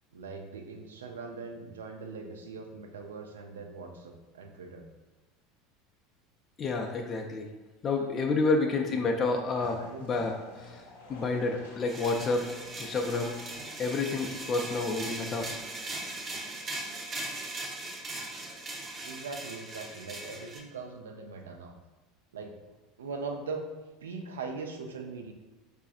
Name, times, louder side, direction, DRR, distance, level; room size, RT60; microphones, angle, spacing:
voice 1, 0.1-4.9 7.9-8.2 8.8-9.1 9.6-10.0 19.0-21.8 22.3-22.6 23.0-23.7 24.0-25.3, right 4 dB, 80° right, 3 dB, 0.4 m, -41 dB
voice 2, 6.6-7.5 7.8-10.8 11.1-12.5 12.8-13.4 13.8-15.5, left 3 dB, 35° left, 3 dB, 0.3 m, -29 dB
sound 1, 9.6-15.6, left 3 dB, 75° left, 0.6 m, -50 dB
sound 2, 11.9-20.6, right 2 dB, 35° right, 0.7 m, -39 dB
4.6 x 2.4 x 2.4 m, 1.2 s
figure-of-eight pair, 75°, 0 cm